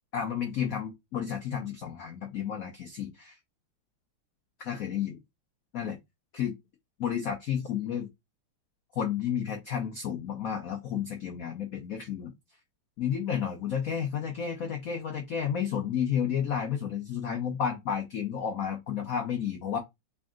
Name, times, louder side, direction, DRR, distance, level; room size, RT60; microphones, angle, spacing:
voice 1, 0.1-3.3 4.6-5.2 5.7-6.0 6.3-6.5 7.0-8.1 9.0-12.3 13.0-19.8, left 8 dB, 80° left, 0.7 m, -31 dB
3.4 x 2.6 x 3.5 m
omnidirectional pair, 2.3 m